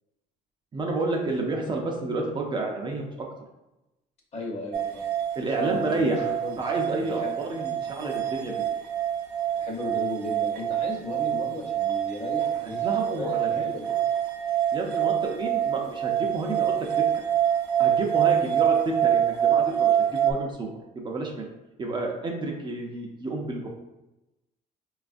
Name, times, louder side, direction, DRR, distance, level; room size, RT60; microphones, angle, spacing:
voice 1, 0.7-3.3 5.4-6.3 6.6-8.6 12.6-13.9 14.7-17.0 17.8-20.7 21.0-21.5 21.8-23.7, right 2 dB, 30° right, 0 dB, 0.4 m, -30 dB
voice 2, 4.3-5.1 5.6-6.6 7.0-7.4 9.6-13.8, left 1 dB, 40° left, -1 dB, 0.9 m, -35 dB
sound 1, 4.7-20.3, right 10 dB, 85° right, 0.5 m, -26 dB
4.0 x 2.3 x 2.5 m, 0.97 s
cardioid pair, 110°, 17 cm